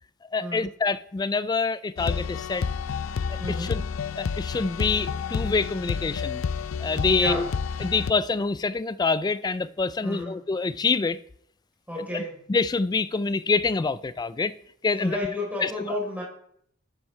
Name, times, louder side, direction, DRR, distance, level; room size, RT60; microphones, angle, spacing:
voice 1, 0.3-2.7 3.5-3.8 4.2-6.4 6.8-7.5 7.8-11.2 12.0-12.2 12.5-14.5 14.8-15.2 15.6-15.7, left 4 dB, 20° left, 0.3 m, -26 dB
sound 1, 2.0-8.1, left 6 dB, 90° left, 0.4 m, -30 dB
voice 2, 3.4-3.8 7.1-7.5 10.0-10.4 11.9-12.4 15.0-16.2, left 1 dB, 10° right, 3.8 m, -32 dB
13.0 x 9.1 x 3.3 m
head